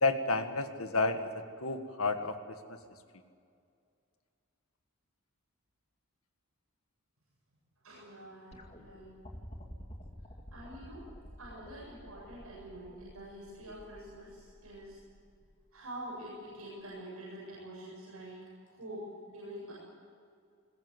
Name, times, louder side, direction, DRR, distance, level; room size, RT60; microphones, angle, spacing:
voice 1, 0.0-2.8, left 3 dB, 75° left, 7 dB, 1.8 m, -31 dB
voice 2, 7.8-9.1 10.5-11.0 11.4-15.0 15.7-19.7, right 1 dB, 85° right, -6 dB, 7.8 m, -46 dB
sound 1, 8.5-15.7 16.8-16.9, equal, 30° left, 2.2 m, -51 dB
21.5 x 21.0 x 8.1 m, 2.3 s
head